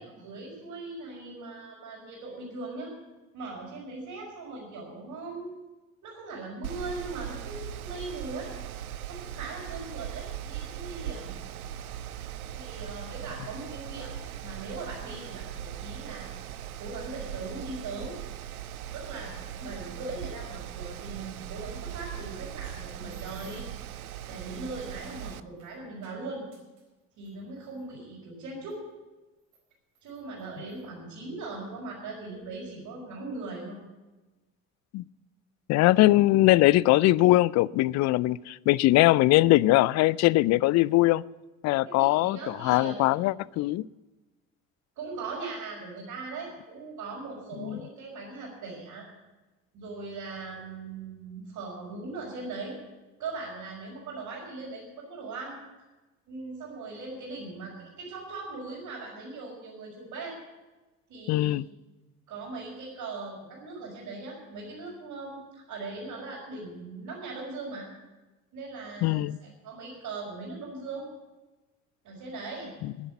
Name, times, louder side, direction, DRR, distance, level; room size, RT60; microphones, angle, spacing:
voice 1, 0.0-2.9 3.3-5.5 6.0-8.5 9.1-11.3 12.5-16.3 16.8-18.2 18.9-23.6 24.3-26.4 27.2-28.8 30.0-33.8 41.8-43.1 45.0-49.1 49.7-52.8 53.2-55.6 56.3-60.4 61.1-61.6 62.3-67.9 68.5-71.1 72.0-72.7, right 3 dB, 55° right, 5.1 m, -39 dB
Mechanical fan, 6.6-25.4, right 10 dB, 90° right, 0.5 m, -39 dB
sound 1, 22.9-23.8 24.5-27.9 28.7-28.8 29.4-30.9 31.7-31.8 32.1-32.5, right 4 dB, 70° right, 4.5 m, -60 dB
voice 2, 35.7-41.2 41.6-43.8 47.6-47.8 61.3-61.7 69.0-69.4 72.8-72.9, left 17 dB, 40° left, 0.4 m, -21 dB
11.5 x 10.5 x 8.8 m
hypercardioid pair, 60°, 42 cm